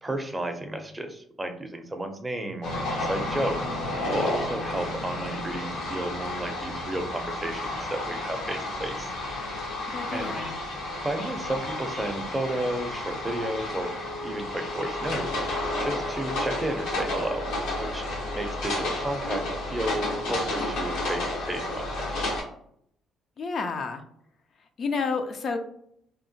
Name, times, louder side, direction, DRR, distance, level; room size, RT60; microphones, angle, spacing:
voice 1, 0.0-3.6 4.1-9.1 10.1-10.3 11.0-13.9 14.2-15.5 15.8-17.5 17.8-18.1 18.3-22.1, right 1 dB, 15° right, 5 dB, 0.5 m, -32 dB
sound 1, 2.6-22.4, left 1 dB, 85° left, 0.9 m, -31 dB
voice 2, 9.9-10.5 23.4-24.0 24.8-25.6, left 4 dB, 55° left, 7 dB, 0.3 m, -30 dB
2.8 x 2.0 x 2.7 m, 0.69 s
cardioid pair, 85°, 0 cm